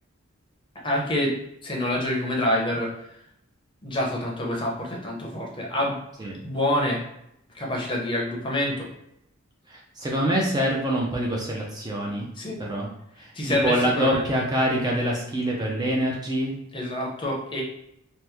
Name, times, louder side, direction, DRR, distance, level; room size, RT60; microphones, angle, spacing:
voice 1, 0.8-1.3 1.6-3.1 3.8-7.0 7.5-8.9 12.4-12.6 13.3-14.3 16.7-17.6, left 1 dB, 25° left, -1 dB, 0.6 m, -27 dB
voice 2, 9.7-12.3 12.6-12.9 13.2-16.5, equal, 20° right, -2 dB, 0.4 m, -25 dB
2.9 x 2.0 x 3.4 m, 0.78 s
head